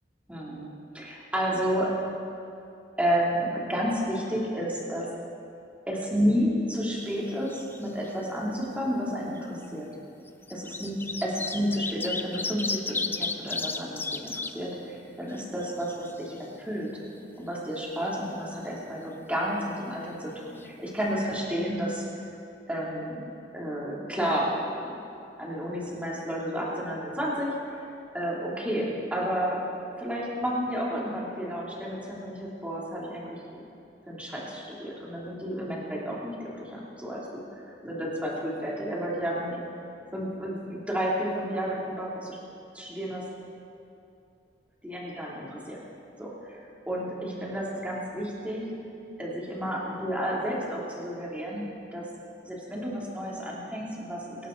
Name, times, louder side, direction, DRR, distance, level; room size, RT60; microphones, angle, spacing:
voice 1, 0.3-1.9 3.0-5.1 5.9-9.9 10.5-17.0 17.4-22.0 22.7-23.2 23.5-24.5 24.8-25.0 25.4-27.9 28.1-29.6 30.0-33.4 34.1-39.6 40.1-42.4 42.7-43.2 44.8-45.8 46.2-48.6 49.2-51.6 51.9-52.1 52.4-54.5, equal, 10° right, -5 dB, 3.0 m, -31 dB
sound 1, 7.0-7.8 8.0-8.1 9.3-9.4 10.3-14.5 15.0-15.1 15.3-16.4 20.3-20.4 20.6-20.7, left 3 dB, 10° left, 0.5 m, -33 dB
25.0 x 11.5 x 4.0 m, 2.6 s
head